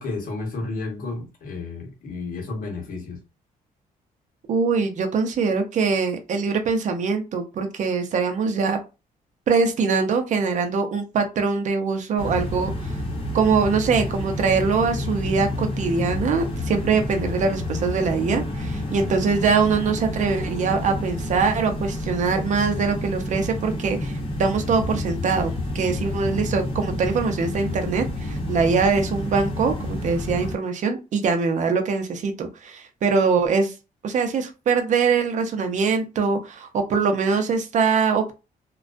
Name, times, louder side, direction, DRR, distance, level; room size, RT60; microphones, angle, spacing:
voice 1, 0.0-3.2, left 3 dB, 65° left, 1.0 m, -32 dB
voice 2, 4.5-8.8 9.5-12.9 13.3-33.7 34.0-38.3, right 5 dB, 55° right, 0.5 m, -23 dB
sound 1, 12.2-30.6, left 1 dB, 35° left, 0.9 m, -29 dB
2.3 x 2.2 x 2.4 m
cardioid pair, 125°, 15 cm